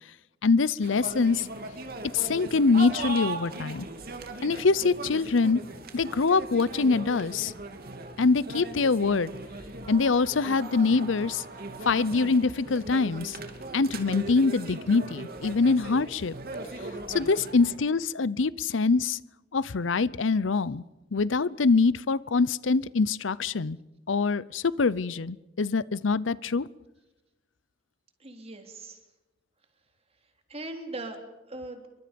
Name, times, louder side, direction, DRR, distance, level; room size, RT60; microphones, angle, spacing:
voice 1, 0.4-1.5 2.1-3.9 4.4-5.6 5.9-7.5 8.2-9.3 9.9-11.4 11.9-13.4 13.7-16.4 17.1-19.2 19.5-20.8 21.1-23.8 24.1-26.7, left 4 dB, 90° left, 20 dB, 0.7 m, -24 dB
sound 1, 0.8-17.8, right 2 dB, 55° right, 2.5 m, -39 dB
voice 2, 28.2-29.0 30.5-31.9, right 2 dB, 35° right, 5 dB, 3.3 m, -39 dB
28.0 x 24.0 x 5.3 m, 1.0 s
head